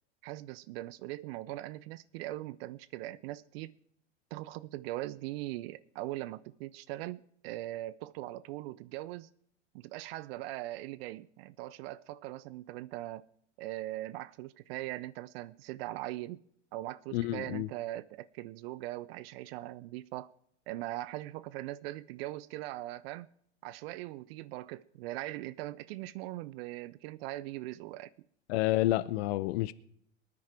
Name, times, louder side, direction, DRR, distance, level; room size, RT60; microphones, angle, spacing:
voice 1, 0.2-3.7 4.3-9.3 9.7-13.2 13.6-16.4 16.7-20.3 20.7-23.3 23.6-28.1, right 16 dB, 55° right, 0.5 m, -40 dB
voice 2, 17.1-17.7 28.5-29.7, left 16 dB, 65° left, 0.6 m, -29 dB
20.5 x 9.6 x 4.4 m
hypercardioid pair, 90°, 35 cm